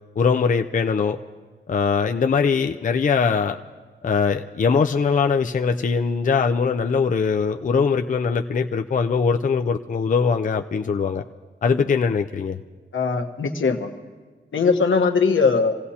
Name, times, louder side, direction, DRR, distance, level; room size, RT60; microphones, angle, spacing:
voice 1, 0.2-1.2 1.7-3.6 4.0-11.2 11.6-12.6, left 5 dB, 40° left, 4 dB, 0.5 m, -21 dB
voice 2, 12.9-13.9 14.5-15.8, left 4 dB, 85° left, 4 dB, 1.2 m, -20 dB
27.0 x 16.5 x 2.9 m, 1.4 s
wide cardioid pair, 145°, 20 cm